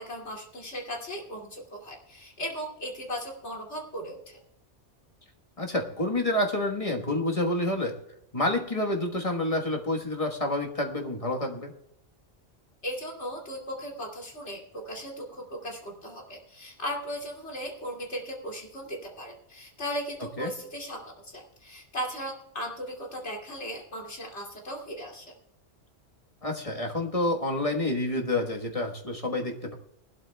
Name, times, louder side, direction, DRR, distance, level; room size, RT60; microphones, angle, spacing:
voice 1, 0.0-4.4 12.8-25.3, equal, 70° left, 0 dB, 2.8 m, -37 dB
voice 2, 5.6-7.9 8.3-11.7 20.4-20.5 26.4-29.7, left 1 dB, 30° left, 2 dB, 1.4 m, -28 dB
20.0 x 12.0 x 2.3 m, 0.81 s
omnidirectional pair, 1.2 m